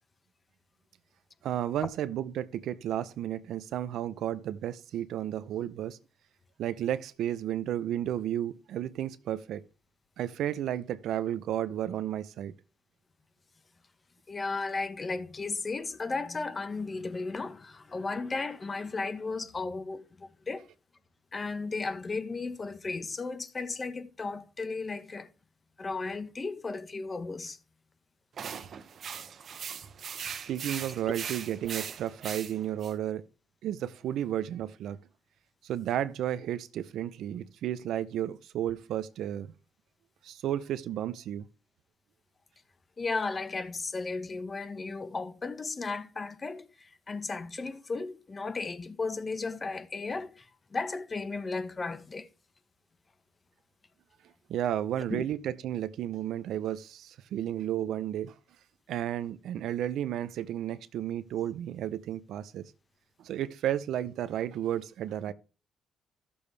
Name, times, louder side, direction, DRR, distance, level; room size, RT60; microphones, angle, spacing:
voice 1, 1.4-6.0 6.6-9.6 10.2-12.5 30.5-33.2 33.6-35.0 35.6-39.5 40.2-41.5 54.5-58.3 58.9-62.7 63.2-65.3, right 11 dB, 80° right, 0.5 m, -33 dB
voice 2, 14.3-20.7 21.3-25.3 25.8-27.6 43.0-52.3 55.1-55.3 65.3-65.4, left 3 dB, 30° left, 1.1 m, -35 dB
sound 1, 28.4-32.9, right 7 dB, 55° right, 0.9 m, -39 dB
13.5 x 6.9 x 3.3 m
cardioid pair, 90°, 0 cm